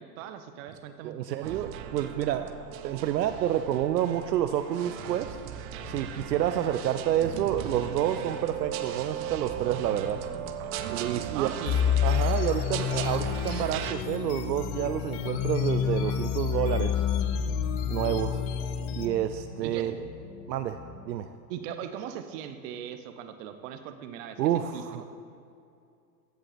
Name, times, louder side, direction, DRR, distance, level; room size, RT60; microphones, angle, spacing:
voice 1, 0.0-1.5 11.3-11.8 19.6-19.9 21.5-25.0, right 9 dB, 50° right, 9 dB, 1.0 m, -39 dB
voice 2, 1.0-2.5 2.8-5.4 5.9-10.2 10.9-11.5 12.0-17.0 17.9-18.4 19.0-19.9 20.5-20.8 21.1-21.3 24.4-25.0, right 11 dB, 75° right, 9 dB, 0.7 m, -29 dB
sound 1, 1.4-13.9, right 11 dB, 30° right, 0.5 m, -38 dB
sound 2, 5.8-21.2, left 4 dB, 75° left, 1.6 m, -45 dB
sound 3, 11.7-19.1, left 9 dB, 30° left, 0.6 m, -28 dB
15.0 x 7.8 x 4.2 m, 2.5 s
hypercardioid pair, 110°, 50 cm